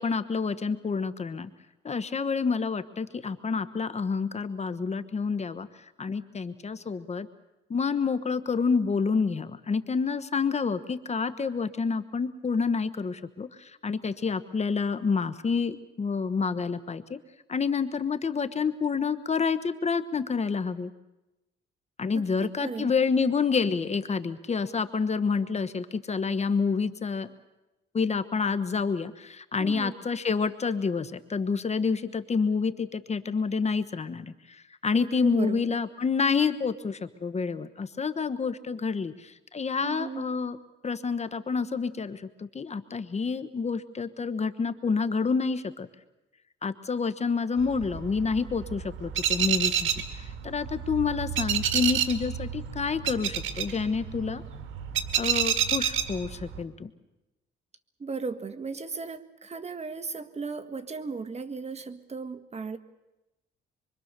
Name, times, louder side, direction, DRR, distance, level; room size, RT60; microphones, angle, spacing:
voice 1, 0.0-1.5 1.8-5.7 6.0-7.3 7.7-17.2 17.5-20.9 22.0-27.3 27.9-40.6 40.8-45.9 46.6-49.9 50.4-54.4 55.1-56.9, left 5 dB, 35° left, 12 dB, 1.2 m, -28 dB
voice 2, 22.1-22.9 29.6-30.0 35.2-35.8 39.8-40.3 58.0-62.8, right 4 dB, 35° right, 10 dB, 1.5 m, -36 dB
sound 1, 47.6-56.6, right 9 dB, 80° right, 1.9 m, -29 dB
25.0 x 24.5 x 6.7 m, 1.0 s
cardioid pair, 90°, 20 cm